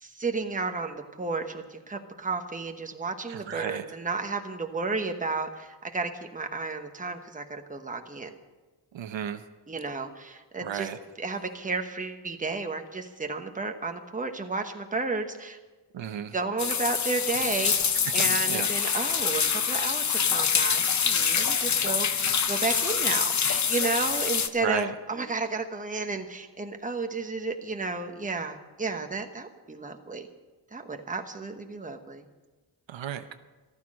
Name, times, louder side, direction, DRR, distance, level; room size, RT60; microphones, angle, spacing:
voice 1, 0.0-8.3 9.7-10.9 11.2-15.6 16.3-30.3 30.7-32.2, right 3 dB, 20° right, 5 dB, 1.1 m, -32 dB
voice 2, 3.3-3.8 8.9-9.4 10.6-11.0 15.9-16.3 18.5-18.7 24.6-24.9 32.9-33.3, right 9 dB, 85° right, 9 dB, 0.9 m, -33 dB
sound 1, 16.6-24.5, left 6 dB, 40° left, 0.7 m, -25 dB
14.0 x 13.0 x 6.3 m, 1.2 s
wide cardioid pair, 140°, 44 cm